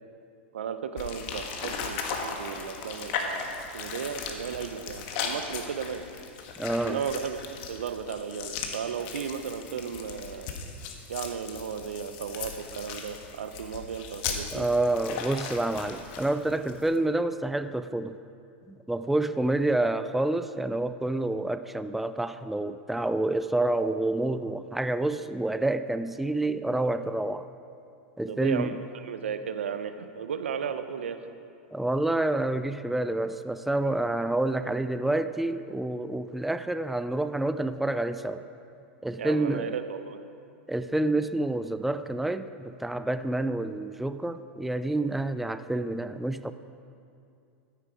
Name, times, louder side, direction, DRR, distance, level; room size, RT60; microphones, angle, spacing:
voice 1, 0.5-6.0 6.8-10.5 11.1-14.7 28.3-31.2 39.2-40.2, right 7 dB, 80° right, 10 dB, 0.8 m, -35 dB
sound 1, 1.0-17.0, left 5 dB, 55° left, 1.6 m, -37 dB
voice 2, 6.6-7.0 14.5-18.2 18.7-27.5 28.2-28.8 31.7-38.4 39.0-39.8 40.7-46.5, right 2 dB, 5° right, 11 dB, 0.4 m, -28 dB
13.5 x 9.7 x 4.9 m, 2.5 s
hypercardioid pair, 100°, 6 cm